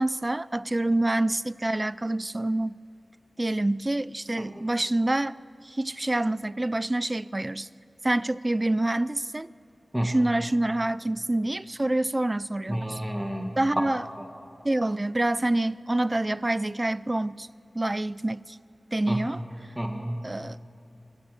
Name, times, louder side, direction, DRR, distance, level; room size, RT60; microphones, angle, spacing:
voice 1, 0.0-2.8 3.4-5.4 5.6-7.7 8.0-9.5 10.0-13.0 13.6-14.0 14.6-17.5 17.7-18.6 18.9-19.4 20.2-20.6, right 1 dB, 25° right, 0.4 m, -27 dB
voice 2, 12.7-13.6 14.2-14.3 19.1-19.2 19.8-20.3, equal, 10° right, 2.0 m, -30 dB
27.0 x 20.0 x 6.6 m
wide cardioid pair, 65°, 0 cm